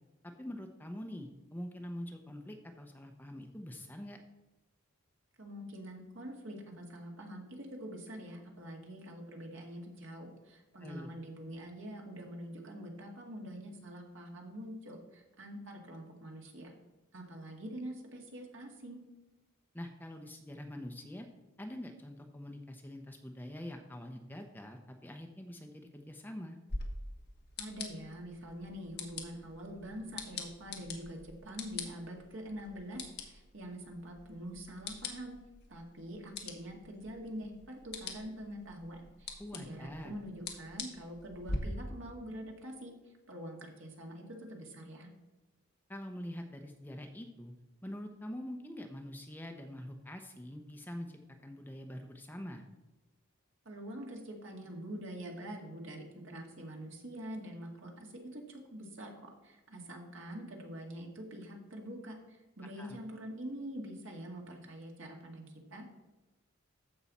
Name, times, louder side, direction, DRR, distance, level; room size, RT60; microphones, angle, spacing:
voice 1, 0.2-4.2 10.8-11.1 19.7-21.3 21.6-26.6 39.4-40.1 45.9-47.5 47.8-52.6 62.6-63.0, left 1 dB, 10° left, 4 dB, 0.7 m, -45 dB
voice 2, 5.4-16.7 17.1-19.0 27.6-35.3 35.7-45.1 53.7-65.9, equal, 60° right, 1 dB, 2.1 m, -45 dB
sound 1, 26.7-41.6, left 3 dB, 50° left, 1.5 m, -45 dB
14.5 x 5.6 x 4.2 m, 1.1 s
head